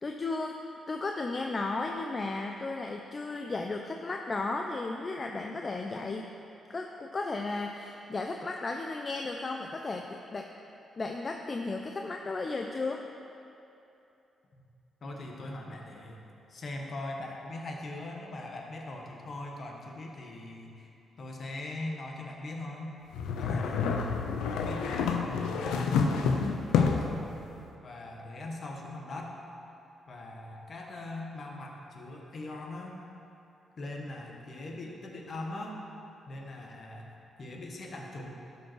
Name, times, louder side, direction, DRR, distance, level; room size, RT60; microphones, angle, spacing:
voice 1, 0.0-6.3 6.7-10.5 11.0-13.0, left 3 dB, 40° left, 3 dB, 0.6 m, -34 dB
voice 2, 15.0-16.2 16.5-20.9 21.2-22.9 23.3-24.1 24.5-27.0 27.8-29.4 30.1-33.0 33.8-35.8 36.3-37.1 37.4-38.3, left 2 dB, 55° left, 0 dB, 1.4 m, -41 dB
sound 1, 23.1-27.2, left 5 dB, 90° left, 0.6 m, -28 dB
12.0 x 5.5 x 4.7 m, 2.8 s
supercardioid pair, 65°, 0 cm